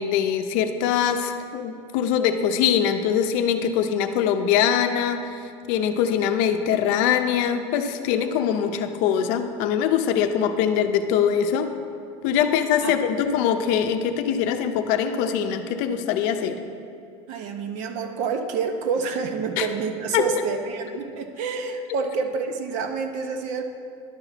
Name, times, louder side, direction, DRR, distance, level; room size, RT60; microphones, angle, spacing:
voice 1, 0.0-5.4 5.7-11.7 12.2-16.6 19.6-19.7 20.1-20.2, left 8 dB, 60° left, 7 dB, 0.6 m, -23 dB
voice 2, 17.3-23.7, right 5 dB, 55° right, 6 dB, 0.8 m, -28 dB
11.0 x 5.8 x 4.0 m, 2.4 s
supercardioid pair, 140°, 15 cm